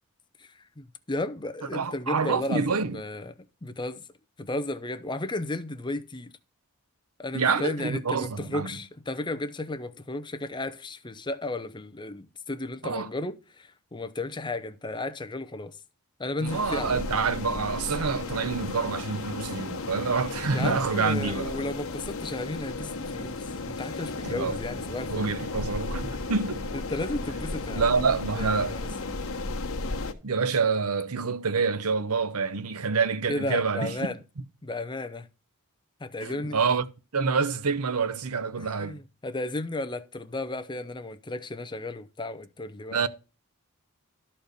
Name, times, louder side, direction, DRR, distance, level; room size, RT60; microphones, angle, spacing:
voice 1, 0.4-3.3 3.6-4.0 4.4-6.3 7.2-15.7 16.2-17.0 20.5-25.3 26.9-27.9 28.3-29.2 33.3-34.2 34.6-35.3 36.0-36.6 38.6-43.1, left 2 dB, 20° left, 0.6 m, -34 dB
voice 2, 1.7-3.0 7.3-8.7 12.8-13.1 16.4-21.5 24.2-24.6 25.1-26.7 27.7-28.8 30.2-33.9 36.2-36.9 37.1-39.0 42.9-43.1, right 5 dB, 85° right, 0.8 m, -27 dB
sound 1, 16.4-30.1, left 3 dB, 65° left, 1.2 m, -34 dB
13.0 x 4.4 x 6.6 m
head